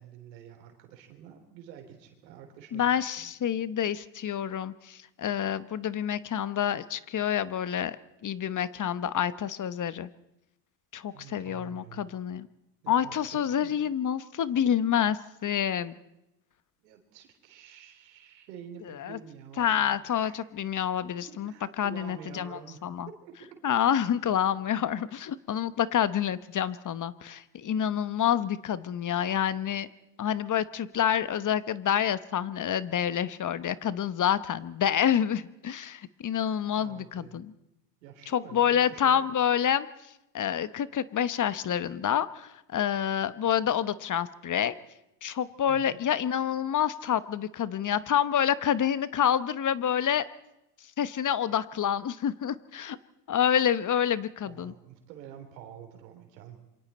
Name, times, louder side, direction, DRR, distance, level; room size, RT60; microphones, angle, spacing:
voice 1, 0.0-3.6 11.1-12.1 12.8-13.8 16.8-20.4 21.0-23.6 36.8-37.4 38.0-39.2 45.7-46.0 54.4-56.6, right 8 dB, 90° right, 5 dB, 3.5 m, -48 dB
voice 2, 2.7-8.0 8.2-10.1 10.9-12.5 12.9-15.9 18.9-19.2 19.6-23.1 23.6-29.9 30.2-37.5 38.3-39.9 40.3-44.7 45.2-50.2 51.0-53.0 53.3-54.7, left 9 dB, 40° left, 15 dB, 1.1 m, -28 dB
27.0 x 24.0 x 4.3 m, 0.90 s
supercardioid pair, 80°, 50 cm